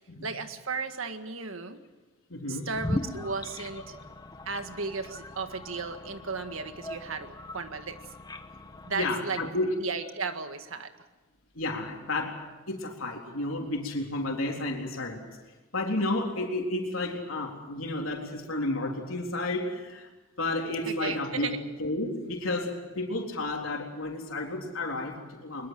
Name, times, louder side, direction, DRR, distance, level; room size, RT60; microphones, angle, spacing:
voice 1, 0.2-1.8 2.5-4.0 4.5-8.0 8.9-9.4 9.8-10.9 20.8-21.6, right 4 dB, 75° right, 8 dB, 1.8 m, -35 dB
voice 2, 2.3-2.7 8.9-9.8 11.6-12.4 12.7-15.3 15.7-20.1 20.4-21.5 21.8-25.7, left 2 dB, 85° left, 0 dB, 3.8 m, -31 dB
sound 1, 2.7-9.1, left 1 dB, 20° left, 1.2 m, -39 dB
22.5 x 22.0 x 7.8 m, 1.2 s
head